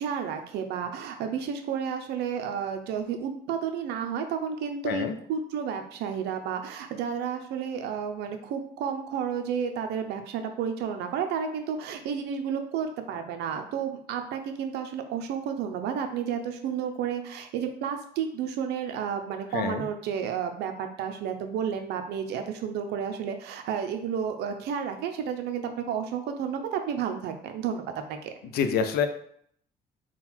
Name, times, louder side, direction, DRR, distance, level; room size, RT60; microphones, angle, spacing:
voice 1, 0.0-28.3, right 7 dB, 80° right, 6 dB, 0.6 m, -31 dB
voice 2, 19.5-19.8 28.5-29.1, left 7 dB, 70° left, 8 dB, 0.5 m, -26 dB
3.8 x 2.3 x 4.4 m, 0.65 s
cardioid pair, 110°, 17 cm